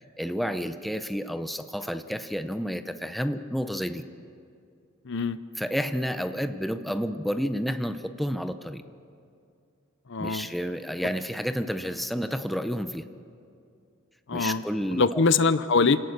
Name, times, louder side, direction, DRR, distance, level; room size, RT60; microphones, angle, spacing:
voice 1, 0.2-4.0 5.6-8.8 10.2-13.1 14.3-15.2, equal, ahead, 9 dB, 0.7 m, -30 dB
voice 2, 5.1-5.4 10.1-10.5 14.3-14.6 14.9-16.0, left 4 dB, 60° left, 14 dB, 0.7 m, -23 dB
28.0 x 18.0 x 6.6 m, 2.4 s
head